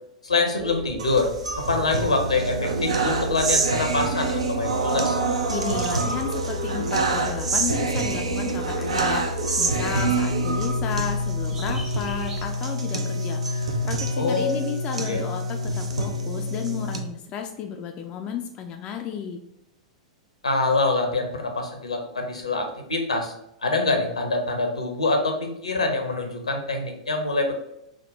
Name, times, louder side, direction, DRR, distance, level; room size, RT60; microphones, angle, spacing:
voice 1, 0.2-5.2 14.2-14.5 15.0-15.2 20.4-23.3 23.6-27.6, left 3 dB, 75° left, 4 dB, 0.7 m, -25 dB
sound 1, 0.6-12.4, right 2 dB, 25° right, 0.8 m, -37 dB
sound 2, 1.0-17.0, right 2 dB, 70° right, 0.5 m, -26 dB
voice 2, 5.5-19.4, left 7 dB, 30° left, 4 dB, 0.3 m, -33 dB
3.6 x 2.1 x 3.9 m, 0.81 s
figure-of-eight pair, 95°, 3 cm